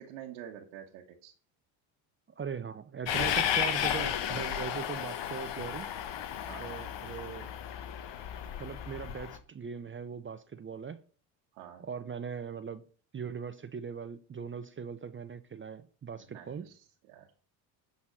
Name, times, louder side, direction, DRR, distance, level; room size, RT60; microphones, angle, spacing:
voice 1, 0.0-1.3 6.5-6.7 11.5-11.8 16.3-17.3, right 10 dB, 80° right, 1.5 m, -47 dB
voice 2, 2.4-5.9 6.6-7.5 8.6-11.0 11.8-12.8 13.1-16.7, right 6 dB, 25° right, 0.7 m, -40 dB
Train, 3.1-9.4, left 9 dB, 55° left, 1.3 m, -33 dB
11.0 x 4.2 x 7.5 m
supercardioid pair, 75°, 50 cm